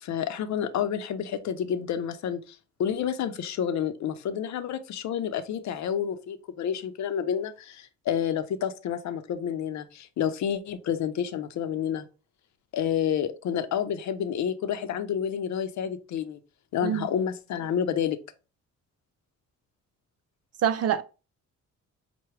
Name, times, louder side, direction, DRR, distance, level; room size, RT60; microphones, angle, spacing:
voice 1, 0.0-12.1 12.7-16.4 16.7-18.2, left 8 dB, 65° left, 0.6 m, -29 dB
voice 2, 20.6-21.0, right 9 dB, 55° right, 0.5 m, -25 dB
5.8 x 2.2 x 3.2 m
cardioid pair, 90°, 30 cm